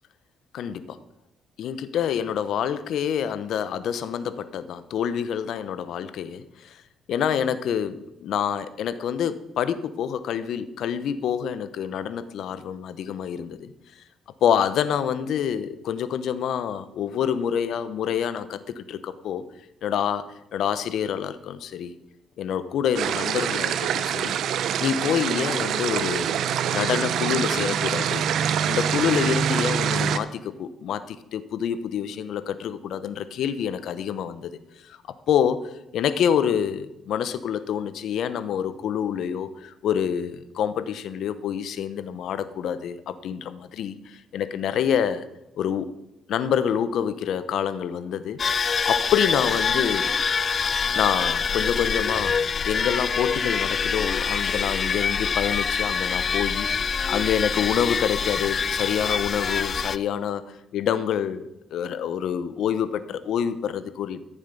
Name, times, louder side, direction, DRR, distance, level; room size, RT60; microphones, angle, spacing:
voice 1, 0.5-1.0 1.6-6.8 7.1-13.7 14.4-19.5 19.8-22.0 22.4-24.3 24.8-26.4 26.7-28.3 28.7-34.6 35.3-45.3 45.6-45.9 46.3-48.4 48.8-50.0 51.0-61.4 61.7-64.2, left 8 dB, 75° left, 13 dB, 0.8 m, -27 dB
sound 1, 22.9-30.2, right 8 dB, 75° right, 0.7 m, -25 dB
sound 2, 48.4-60.0, left 6 dB, 45° left, 0.4 m, -25 dB
14.5 x 7.3 x 5.3 m, 0.92 s
cardioid pair, 90°, 0 cm